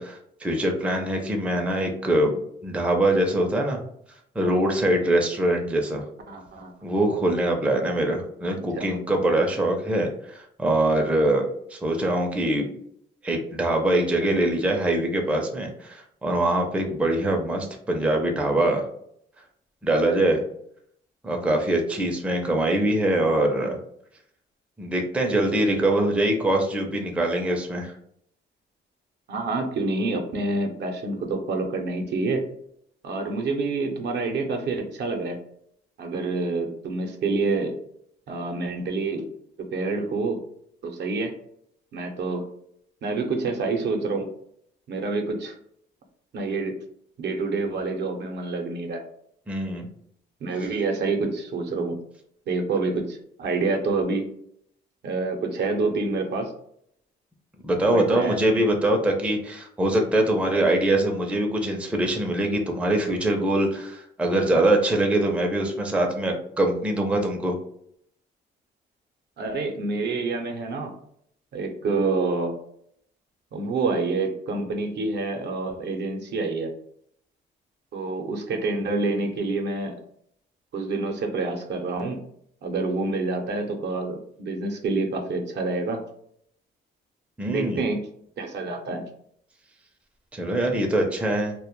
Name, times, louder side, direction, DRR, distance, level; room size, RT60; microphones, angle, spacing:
voice 1, 0.0-2.3 2.6-3.8 4.4-6.0 6.8-12.7 13.2-18.8 19.8-20.4 21.2-23.8 24.8-27.9 49.5-49.9 57.6-67.6 87.4-87.9 90.3-91.5, right 1 dB, 5° right, 1 dB, 0.4 m, -23 dB
voice 2, 6.3-6.7 8.8-8.9 29.3-32.4 33.0-35.4 36.0-37.8 38.3-39.3 39.6-40.4 40.8-41.3 41.9-42.4 43.0-44.3 44.9-45.5 46.3-46.7 47.2-49.0 50.4-52.0 52.5-54.3 55.0-56.5 57.9-58.4 69.4-70.9 71.5-72.5 73.5-76.7 77.9-79.9 80.7-82.2 82.6-86.0 87.5-88.0 88.4-89.0, right 3 dB, 60° right, 4 dB, 0.6 m, -27 dB
2.1 x 2.0 x 2.9 m, 0.68 s
cardioid pair, 90°, 20 cm